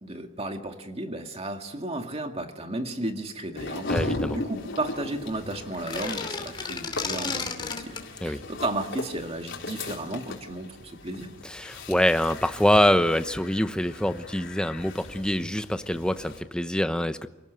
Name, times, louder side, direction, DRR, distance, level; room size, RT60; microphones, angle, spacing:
voice 1, 0.0-11.3, right 2 dB, 30° right, 5 dB, 2.1 m, -34 dB
sound 1, 3.6-16.4, left 2 dB, 60° left, 4.1 m, -37 dB
voice 2, 3.9-4.4 8.2-8.4 11.4-17.3, left 1 dB, 5° left, 9 dB, 0.9 m, -25 dB
sound 2, 5.7-8.1, left 4 dB, 25° left, 2.8 m, -33 dB
28.5 x 18.5 x 8.2 m, 1.1 s
head